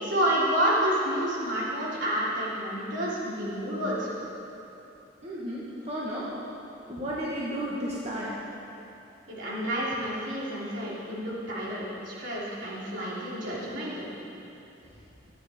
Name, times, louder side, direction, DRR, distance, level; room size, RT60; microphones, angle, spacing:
voice 1, 0.0-4.1 9.3-14.1, equal, 70° right, -7 dB, 3.3 m, -29 dB
voice 2, 5.2-6.3 6.9-8.4, equal, 35° right, -7 dB, 1.5 m, -33 dB
14.0 x 9.0 x 5.0 m, 2.8 s
head